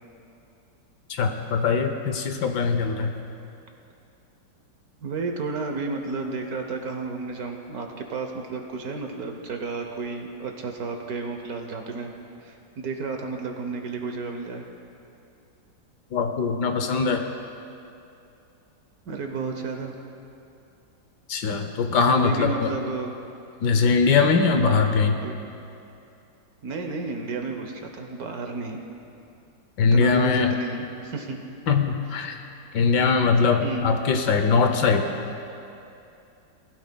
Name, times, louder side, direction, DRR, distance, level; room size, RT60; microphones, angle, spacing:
voice 1, 1.1-3.1 16.1-17.3 21.3-22.7 23.6-25.2 29.8-30.5 31.7-32.4 32.7-35.0, left 5 dB, 70° left, 6 dB, 1.2 m, -21 dB
voice 2, 5.0-12.1 12.4-14.7 19.0-19.9 22.1-23.1 24.5-24.8 25.2-25.5 26.6-28.8 29.9-31.4 33.6-34.0, right 4 dB, 60° right, 4 dB, 1.2 m, -32 dB
19.5 x 11.5 x 2.2 m, 2.7 s
omnidirectional pair, 2.0 m